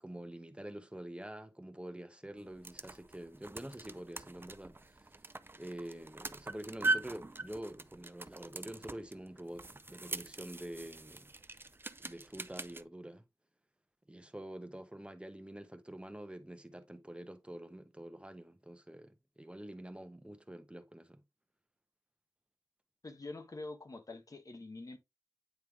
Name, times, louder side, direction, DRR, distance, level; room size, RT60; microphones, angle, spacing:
voice 1, 0.0-5.2 5.6-11.3 12.0-13.2 14.1-21.2, right 1 dB, 15° right, 0.9 m, -47 dB
sound 1, 2.4-12.8, right 2 dB, 35° right, 0.5 m, -41 dB
voice 2, 23.0-25.0, left 2 dB, 60° left, 1.1 m, -45 dB
9.0 x 3.2 x 3.5 m
wide cardioid pair, 65°, 7 cm